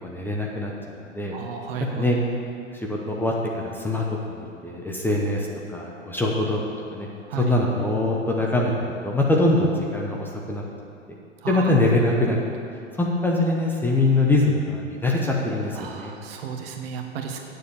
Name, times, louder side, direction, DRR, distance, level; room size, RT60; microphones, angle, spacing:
voice 1, 0.0-1.3 1.8-2.2 2.7-6.6 6.9-7.1 7.4-10.6 11.5-12.4 13.0-16.1, left 2 dB, 5° left, -2 dB, 0.9 m, -23 dB
voice 2, 1.3-2.0 7.3-7.4 11.4-11.7 15.8-17.4, right 7 dB, 50° right, 3 dB, 1.4 m, -33 dB
9.4 x 6.8 x 7.1 m, 2.5 s
figure-of-eight pair, 100°, 37 cm